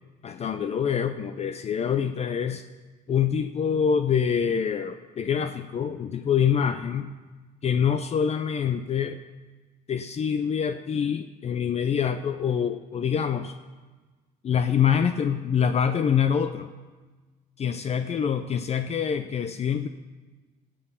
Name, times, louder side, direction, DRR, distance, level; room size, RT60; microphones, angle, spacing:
voice 1, 0.2-2.6 3.1-7.1 7.6-9.2 9.9-13.5 14.4-16.7 17.6-19.9, left 7 dB, 40° left, 9 dB, 0.6 m, -25 dB
16.5 x 7.7 x 5.6 m, 1.3 s
cardioid pair, 110°, 17 cm